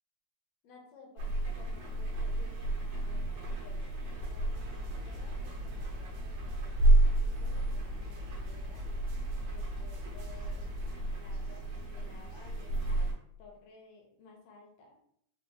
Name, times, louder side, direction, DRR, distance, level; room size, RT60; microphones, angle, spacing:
voice 1, 0.6-8.9 9.1-13.1 13.4-15.0, left 4 dB, 75° left, 0 dB, 1.6 m, -56 dB
sound 1, 1.2-13.1, right 2 dB, 70° right, 1.5 m, -31 dB
sound 2, 4.2-11.0, left 2 dB, 85° right, 1.3 m, -43 dB
4.9 x 2.1 x 3.0 m, 0.70 s
omnidirectional pair, 3.5 m